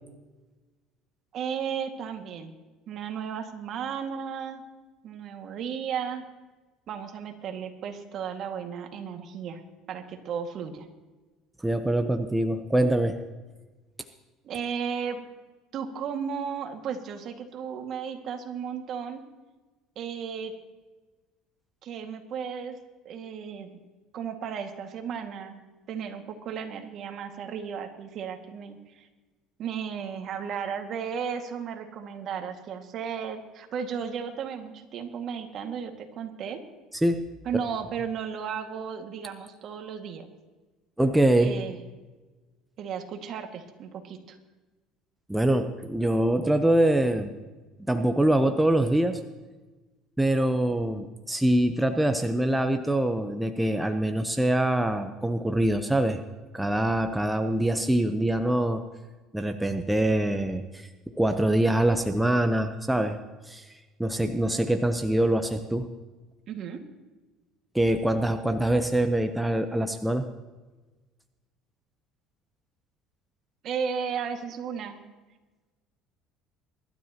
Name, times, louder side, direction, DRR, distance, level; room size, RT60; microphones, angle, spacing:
voice 1, 1.3-2.5 2.9-4.6 5.0-6.2 6.9-9.6 9.9-10.9 14.4-15.3 15.7-19.2 20.0-20.5 21.8-22.8 23.1-23.7 24.1-25.6 25.9-29.1 29.6-36.6 37.5-40.3 41.4-41.8 42.8-44.4 66.5-66.8 73.6-75.0, right 7 dB, 55° right, 4 dB, 2.0 m, -34 dB
voice 2, 11.6-13.2 36.9-37.3 41.0-41.5 45.3-47.3 47.9-49.2 50.2-56.2 56.5-58.8 59.3-60.9 61.2-63.2 63.4-63.7 64.0-65.9 67.7-70.3, right 1 dB, 5° right, 7 dB, 0.8 m, -24 dB
23.5 x 12.5 x 3.0 m, 1.2 s
supercardioid pair, 105°, 0 cm